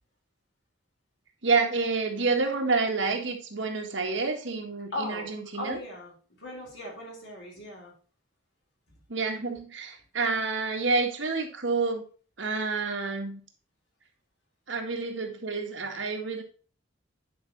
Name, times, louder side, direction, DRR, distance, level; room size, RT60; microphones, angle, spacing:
voice 1, 1.4-5.8 9.1-12.0 12.4-13.4 14.7-16.4, right 4 dB, 70° right, 3 dB, 1.7 m, -28 dB
voice 2, 4.9-5.3 5.5-7.9, left 1 dB, 65° left, -2 dB, 4.1 m, -38 dB
9.5 x 5.0 x 4.1 m, 0.39 s
head